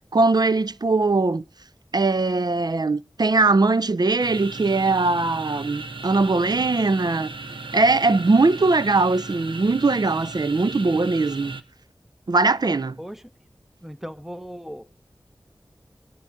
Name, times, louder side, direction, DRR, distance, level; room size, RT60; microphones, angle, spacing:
voice 1, 0.1-1.4 1.9-7.3 7.7-11.6 12.3-13.0, right 3 dB, 55° right, 0.5 m, -20 dB
sound 1, 4.2-11.6, right 3 dB, 80° right, 1.1 m, -36 dB
voice 2, 13.8-14.8, equal, 5° right, 0.9 m, -37 dB
23.5 x 9.8 x 2.4 m
wide cardioid pair, 45°, 8 cm